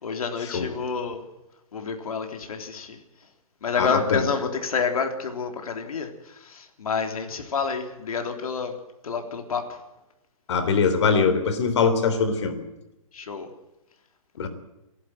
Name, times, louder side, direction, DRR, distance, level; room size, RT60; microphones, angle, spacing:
voice 1, 0.0-1.2 1.7-3.0 3.6-8.7 9.0-9.6 13.1-13.5, left 5 dB, 85° left, 4 dB, 3.5 m, -28 dB
voice 2, 3.8-4.3 10.5-12.6 14.4-14.5, left 5 dB, 55° left, 9 dB, 3.7 m, -22 dB
29.5 x 11.5 x 9.0 m, 0.95 s
hypercardioid pair, 170°, 18 cm